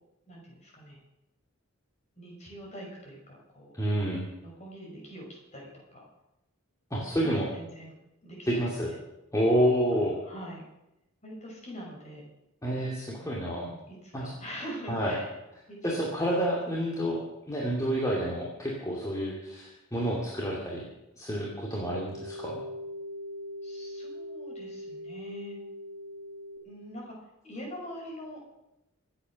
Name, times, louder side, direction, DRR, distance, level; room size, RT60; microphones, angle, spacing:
voice 1, 0.3-1.0 2.2-3.7 4.4-5.3 5.5-6.1 7.1-7.9 8.2-8.9 9.9-10.6 11.2-12.2 13.2-15.3 15.7-16.0 23.6-25.6 26.6-27.1 27.4-28.4, equal, 35° left, -2 dB, 6.1 m, -44 dB
voice 2, 3.7-4.3 6.9-7.5 8.5-8.9 9.3-10.2 12.6-13.7 14.1-14.3 14.9-15.2 15.8-20.9 21.1-22.6, equal, 15° left, -3 dB, 2.5 m, -29 dB
sound 1, 21.6-26.6, left 1 dB, 40° right, 3.6 m, -41 dB
25.0 x 8.8 x 6.4 m, 0.93 s
head